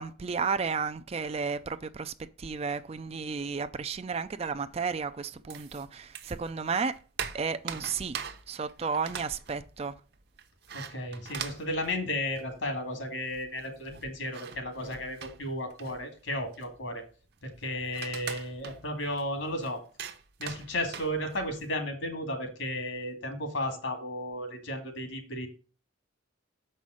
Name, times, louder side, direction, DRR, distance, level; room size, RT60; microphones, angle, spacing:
voice 1, 0.0-7.0 7.3-8.2 8.5-9.9, right 5 dB, 30° right, 0.4 m, -33 dB
sound 1, 5.5-6.5 6.8-12.7 13.0-13.1 13.3-21.7, right 7 dB, 50° right, 0.9 m, -42 dB
voice 2, 10.7-17.0 17.4-19.8 20.4-25.5, left 1 dB, 70° left, 2.3 m, -34 dB
7.1 x 5.6 x 6.3 m
head